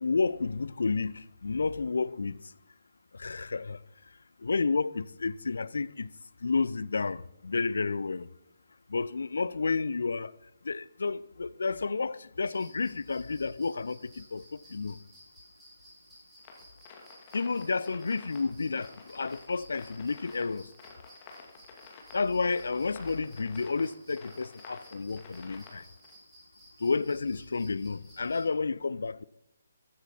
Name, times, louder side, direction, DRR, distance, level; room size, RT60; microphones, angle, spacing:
voice 1, 0.0-2.4 3.2-3.8 4.4-6.1 6.4-8.3 8.9-10.3 10.6-15.0 17.3-20.7 22.1-25.8 26.8-29.2, left 4 dB, 60° left, 0.5 m, -31 dB
sound 1, 12.4-28.5, equal, 5° right, 6.4 m, -57 dB
sound 2, 16.4-26.1, left 5 dB, 25° left, 2.3 m, -51 dB
15.0 x 12.0 x 4.3 m
figure-of-eight pair, 140°, 0 cm